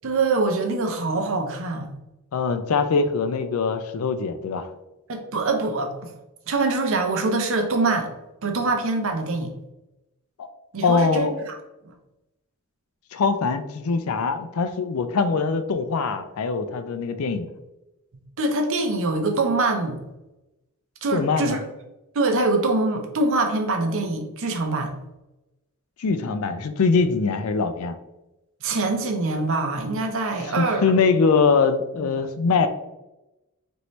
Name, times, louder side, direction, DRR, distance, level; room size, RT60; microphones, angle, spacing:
voice 1, 0.0-1.9 5.1-6.1 6.5-8.1 8.4-9.5 10.7-11.5 18.1-20.0 21.0-21.6 22.1-24.9 28.6-31.0 32.0-32.1, right 3 dB, 65° right, 4 dB, 0.6 m, -24 dB
voice 2, 2.3-4.7 10.4-10.5 10.8-11.3 13.1-17.5 21.1-21.6 26.0-28.0 30.6-32.7, left 4 dB, 70° left, 9 dB, 0.4 m, -22 dB
4.4 x 2.7 x 3.1 m, 0.96 s
head